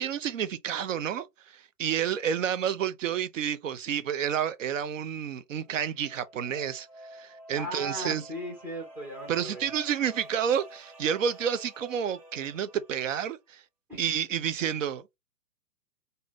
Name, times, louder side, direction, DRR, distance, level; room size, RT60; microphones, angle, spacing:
voice 1, 0.0-8.2 9.3-13.6 14.0-15.0, right 8 dB, 50° right, 0.6 m, -30 dB
sound 1, 5.6-13.3, right 1 dB, 80° right, 1.6 m, -50 dB
voice 2, 7.6-9.7 13.9-14.0, equal, 5° right, 0.5 m, -37 dB
2.8 x 2.7 x 3.4 m
figure-of-eight pair, 125°, 49 cm